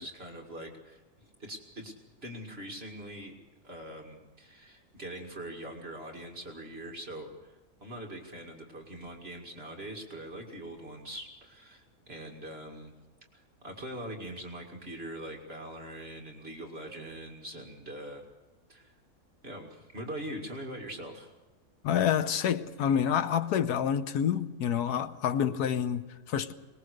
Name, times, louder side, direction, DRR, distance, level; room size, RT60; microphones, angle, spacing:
voice 1, 0.0-1.9 2.2-3.3 3.6-12.9 13.3-18.2 18.7-18.9 19.4-21.3, right 1 dB, 40° right, 2.5 m, -42 dB
voice 2, 21.8-26.5, left 8 dB, 90° left, 1.4 m, -28 dB
21.5 x 20.5 x 6.6 m
omnidirectional pair, 1.6 m